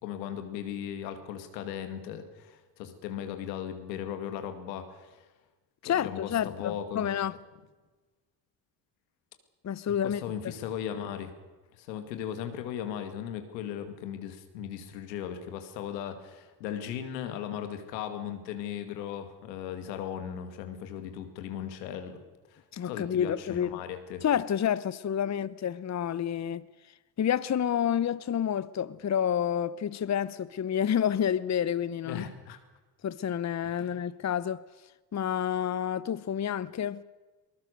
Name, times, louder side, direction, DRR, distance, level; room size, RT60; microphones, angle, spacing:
voice 1, 0.0-5.2 5.8-7.0 10.0-11.3 11.7-22.2 22.5-24.2 32.1-32.6 33.7-34.0, left 9 dB, 90° left, 2.3 m, -37 dB
voice 2, 5.8-7.3 9.6-10.5 22.7-23.8 24.2-26.7 27.2-32.2 33.0-34.6 35.1-37.0, left 9 dB, 35° left, 0.8 m, -29 dB
23.0 x 20.0 x 6.7 m
hypercardioid pair, 55°, 49 cm